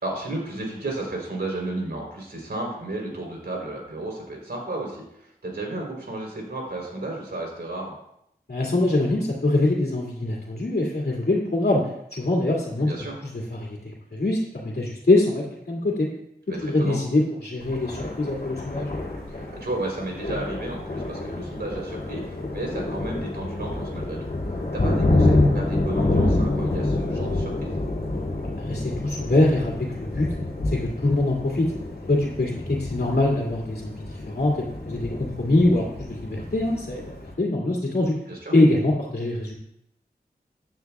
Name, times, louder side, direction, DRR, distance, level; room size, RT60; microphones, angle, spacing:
voice 1, 0.0-7.9 12.8-13.2 16.5-17.0 19.3-24.3 24.7-27.8 38.3-38.5, right 2 dB, 85° right, -1 dB, 3.7 m, -33 dB
voice 2, 8.5-11.8 12.1-12.9 13.3-13.8 14.1-16.1 16.6-19.0 28.6-30.3 30.7-31.7 32.1-38.2 38.5-39.5, left 2 dB, 80° left, -3 dB, 2.2 m, -23 dB
Thunder, 17.6-37.3, left 2 dB, 60° left, 2.4 m, -27 dB
15.0 x 9.2 x 2.4 m, 0.77 s
wide cardioid pair, 75°, 17 cm